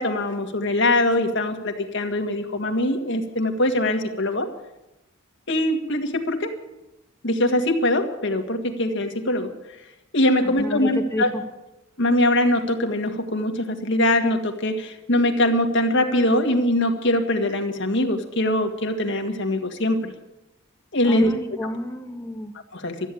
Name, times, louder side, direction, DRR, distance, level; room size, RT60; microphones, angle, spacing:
voice 1, 0.0-4.5 5.5-6.5 7.2-9.5 10.1-11.3 12.0-20.1 20.9-21.3 22.7-23.1, left 1 dB, 60° left, 4 dB, 1.8 m, -22 dB
voice 2, 10.4-11.4 21.0-22.5, left 1 dB, 15° left, 5 dB, 1.4 m, -31 dB
13.5 x 9.2 x 9.9 m, 0.95 s
head